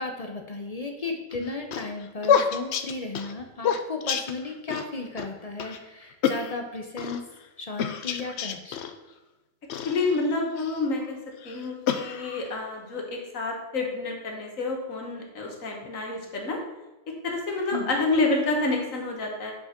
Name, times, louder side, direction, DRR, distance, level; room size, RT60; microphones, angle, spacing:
voice 1, 0.0-7.2 7.6-8.8 17.7-18.0, left 3 dB, 40° left, 4 dB, 0.6 m, -35 dB
sound 1, 1.3-4.9 5.2-5.3 5.6-5.8 6.2-7.2 7.8-8.9 9.7-10.8 11.4-12.6, left 7 dB, 65° left, 0.8 m, -28 dB
voice 2, 9.8-11.2 11.4-16.6 17.2-19.5, left 3 dB, 85° left, 1 dB, 1.8 m, -28 dB
5.9 x 5.4 x 5.8 m, 1.0 s
omnidirectional pair, 1.3 m